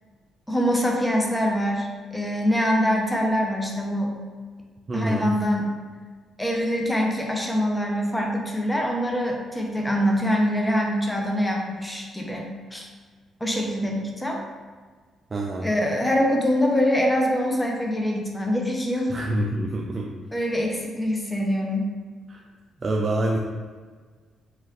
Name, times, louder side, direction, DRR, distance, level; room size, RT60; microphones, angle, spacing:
voice 1, 0.5-4.2 4.9-5.7 6.4-12.9 13.4-14.4 15.6-19.1 20.3-21.9, equal, 10° left, 0 dB, 0.6 m, -24 dB
voice 2, 4.9-5.4 15.3-15.7 19.1-20.1 22.3-22.4 22.8-23.4, right 1 dB, 35° right, -1 dB, 0.4 m, -26 dB
4.3 x 2.4 x 3.6 m, 1.5 s
cardioid pair, 90°, 0 cm